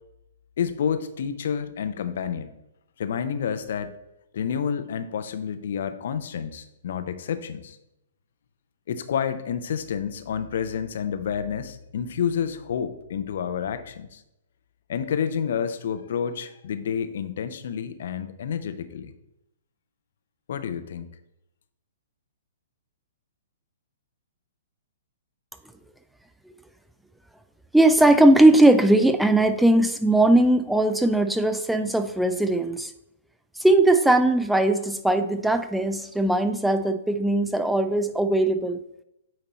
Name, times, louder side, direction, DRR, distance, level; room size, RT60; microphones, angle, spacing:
voice 1, 0.6-2.6 3.0-3.9 4.3-7.8 8.9-14.2 14.9-19.1 20.5-21.1, left 7 dB, 60° left, 10 dB, 0.6 m, -29 dB
voice 2, 27.7-32.9 33.6-38.8, right 1 dB, ahead, 8 dB, 0.3 m, -19 dB
8.7 x 3.0 x 4.1 m, 0.86 s
figure-of-eight pair, 120°, 0 cm